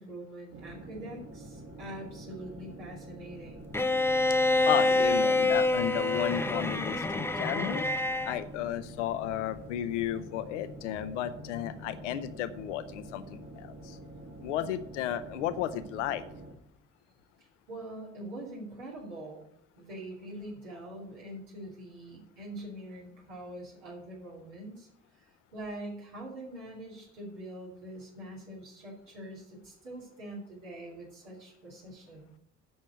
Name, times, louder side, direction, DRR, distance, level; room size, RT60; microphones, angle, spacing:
voice 1, 0.0-3.7 17.7-19.4 19.8-24.9 25.5-32.3, right 1 dB, 75° right, -5 dB, 2.7 m, -44 dB
sound 1, 0.5-16.5, right 1 dB, 40° right, 2.3 m, -47 dB
Bowed string instrument, 3.7-8.4, left 2 dB, 5° left, 0.7 m, -26 dB
voice 2, 4.7-8.0 8.3-14.0 14.4-16.2, left 11 dB, 70° left, 13 dB, 0.7 m, -33 dB
7.9 x 6.4 x 7.8 m, 0.72 s
figure-of-eight pair, 45°, 37 cm